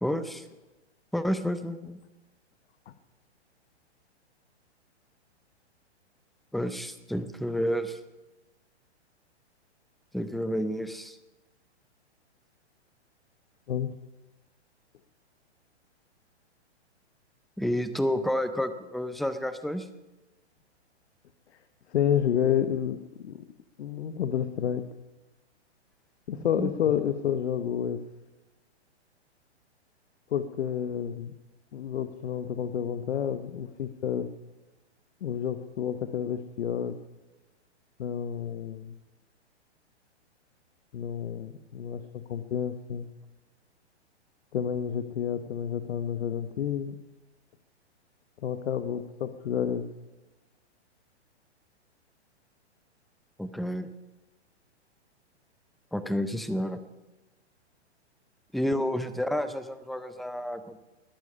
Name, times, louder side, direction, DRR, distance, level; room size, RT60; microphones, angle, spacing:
voice 1, 0.0-0.4 1.1-2.0 6.5-8.0 10.1-11.2 17.6-19.9 26.6-26.7 53.4-53.9 55.9-56.8 58.5-60.8, equal, ahead, 11 dB, 0.6 m, -30 dB
voice 2, 21.9-23.0 23.2-23.4 23.8-24.8 26.3-28.0 30.3-31.3 31.7-34.3 35.2-37.0 38.0-38.9 40.9-43.1 44.5-47.0 48.4-49.9, left 9 dB, 70° left, 10 dB, 1.1 m, -30 dB
20.0 x 11.0 x 5.5 m, 1.1 s
hypercardioid pair, 125°, 34 cm